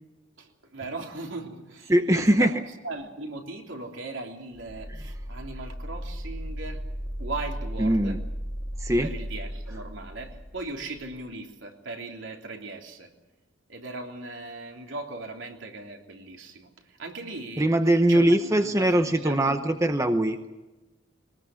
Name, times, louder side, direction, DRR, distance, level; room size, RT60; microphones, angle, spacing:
voice 1, 0.4-2.5 2.8-6.8 7.2-8.2 9.0-13.1 13.7-17.7 18.1-19.6, right 2 dB, 70° right, 2 dB, 3.4 m, -38 dB
voice 2, 1.9-2.5 7.8-8.2 8.8-9.1 17.6-20.4, right 1 dB, 15° right, 7 dB, 0.9 m, -21 dB
Monster Inhale, 4.5-11.2, equal, 25° left, 2.4 m, -36 dB
22.0 x 20.0 x 7.7 m, 1.1 s
head